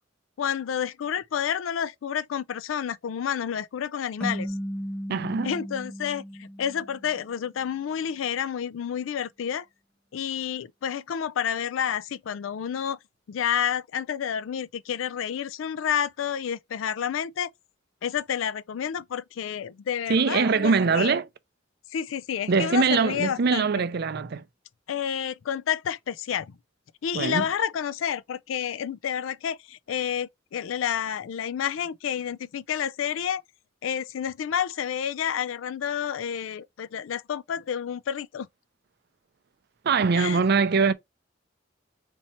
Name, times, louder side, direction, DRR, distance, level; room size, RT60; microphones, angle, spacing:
voice 1, 0.4-4.5 5.4-9.6 10.1-13.0 13.3-17.5 18.0-21.2 21.9-23.8 24.9-26.6 27.0-33.4 33.8-38.5 40.1-40.4, left 8 dB, 80° left, 0.4 m, -30 dB
sound 1, 4.2-7.4, equal, 5° left, 0.4 m, -35 dB
voice 2, 5.1-5.5 20.1-21.3 22.5-24.4 27.1-27.5 39.8-40.9, right 5 dB, 55° right, 0.5 m, -22 dB
4.4 x 2.9 x 4.1 m
head